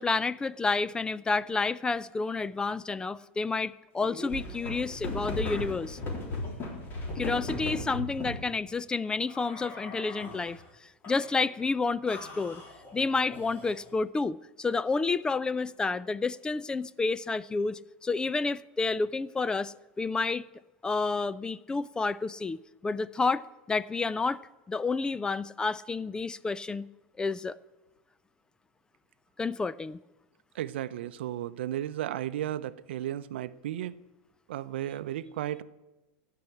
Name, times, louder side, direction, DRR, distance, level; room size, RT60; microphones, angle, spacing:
voice 1, 0.0-6.0 7.2-10.6 11.1-12.6 12.9-20.4 20.8-24.4 24.7-26.9 27.2-27.6 29.4-30.0, left 4 dB, 15° left, 0.4 m, -30 dB
sound 1, 4.0-8.5 9.3-10.6 11.0-11.6 12.1-13.9, left 2 dB, 35° left, 3.6 m, -38 dB
voice 2, 30.5-33.9 34.5-35.6, right 12 dB, 80° right, 0.6 m, -34 dB
15.5 x 5.7 x 9.7 m
supercardioid pair, 115°, 6 cm